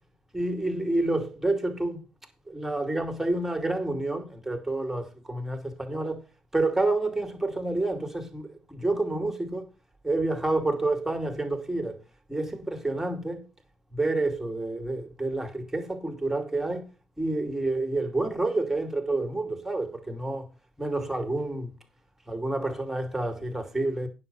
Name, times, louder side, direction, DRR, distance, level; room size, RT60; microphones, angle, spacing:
voice 1, 0.3-2.0 2.5-6.2 6.5-9.7 10.0-12.0 12.3-13.5 13.9-16.9 17.2-20.5 20.8-21.7 22.3-24.1, right 2 dB, 10° right, 2.6 m, -29 dB
9.6 x 6.7 x 5.5 m
hypercardioid pair, 50°, 4 cm